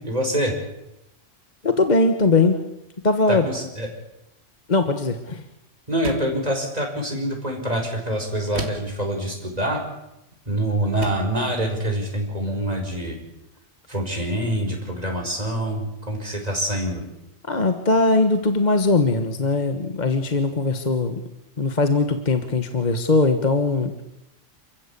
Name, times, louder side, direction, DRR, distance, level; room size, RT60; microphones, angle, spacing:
voice 1, 0.0-0.6 3.3-3.9 5.9-9.8 10.5-13.2 13.9-17.0, right 1 dB, 35° right, 1 dB, 5.5 m, -25 dB
voice 2, 1.6-2.6 3.0-3.5 4.7-5.4 17.5-21.2 21.6-23.9, left 3 dB, 40° left, 7 dB, 1.5 m, -20 dB
sound 1, 6.0-6.5 8.5-9.0 10.3-10.5 11.0-11.4, right 2 dB, 65° right, 2.6 m, -33 dB
29.0 x 15.0 x 8.6 m, 0.88 s
omnidirectional pair, 1.2 m